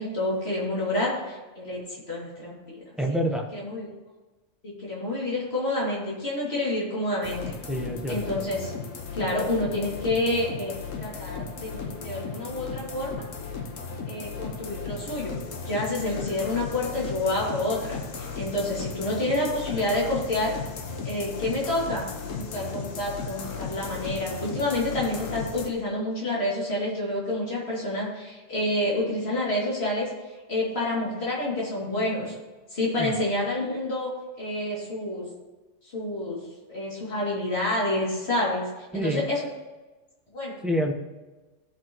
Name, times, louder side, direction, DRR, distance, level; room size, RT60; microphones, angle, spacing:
voice 1, 0.0-2.9 3.5-3.9 4.6-7.5 8.1-8.7 9.1-13.2 14.1-15.4 15.6-20.6 21.0-22.1 22.4-30.1 30.5-32.4 32.7-34.1 34.4-35.2 35.9-36.4 36.7-38.7 38.9-39.5 40.3-40.6, left 1 dB, 55° left, -5 dB, 2.9 m, -28 dB
voice 2, 3.0-3.5 7.7-8.2 33.0-33.1 38.9-39.3 40.6-40.9, equal, ahead, 1 dB, 0.9 m, -27 dB
sound 1, 7.2-25.7, left 5 dB, 90° left, 1.3 m, -36 dB
14.5 x 6.6 x 3.0 m, 1.2 s
omnidirectional pair, 1.3 m